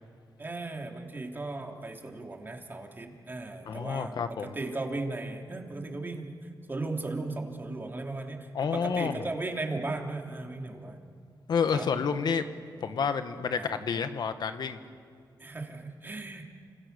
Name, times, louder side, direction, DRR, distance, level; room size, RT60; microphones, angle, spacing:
voice 1, 0.4-4.1 4.4-6.4 6.7-11.0 11.7-11.9 13.6-13.7 15.4-16.4, right 2 dB, 25° right, 2 dB, 3.4 m, -36 dB
voice 2, 3.6-4.5 8.5-9.3 11.5-12.4 12.8-14.8, left 6 dB, 65° left, 9 dB, 1.5 m, -29 dB
29.5 x 27.0 x 6.9 m, 2.2 s
cardioid pair, 85°, 8 cm